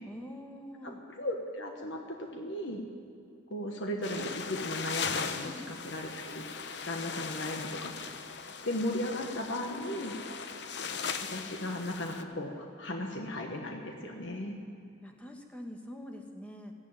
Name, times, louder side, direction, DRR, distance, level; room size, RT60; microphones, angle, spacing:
voice 1, 0.1-1.0 2.2-2.4 5.4-5.7 9.7-10.0 15.0-16.7, equal, 5° left, 2 dB, 1.3 m, -45 dB
voice 2, 0.8-2.8 3.5-6.4 6.9-7.9 8.6-10.1 11.3-14.6, left 1 dB, 80° left, 2 dB, 1.3 m, -36 dB
sound 1, 4.0-12.2, left 5 dB, 65° left, 0.8 m, -38 dB
14.0 x 11.0 x 8.9 m, 2.5 s
head